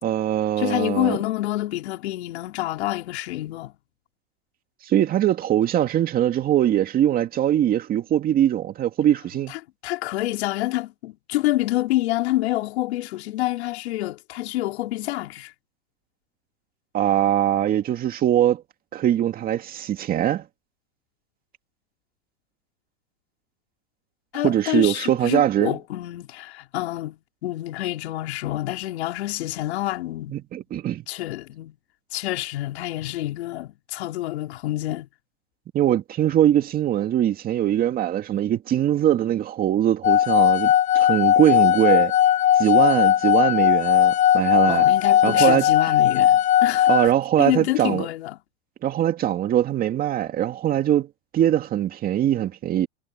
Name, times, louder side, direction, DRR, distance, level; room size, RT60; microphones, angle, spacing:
voice 1, 0.0-1.2 4.8-9.5 16.9-18.6 18.9-20.5 24.3-25.8 30.3-31.0 35.7-42.1 42.6-44.8 45.2-45.7 46.9-48.1 48.8-51.1 51.3-52.9, right 11 dB, 25° right, 2.3 m, -22 dB
voice 2, 0.6-3.7 9.5-15.5 24.3-30.3 31.1-31.8 32.1-35.1 44.7-46.9 47.4-48.4, left 16 dB, 65° left, 5.0 m, -27 dB
sound 1, 40.0-47.1, left 11 dB, 20° left, 1.1 m, -18 dB
supercardioid pair, 140°, 35 cm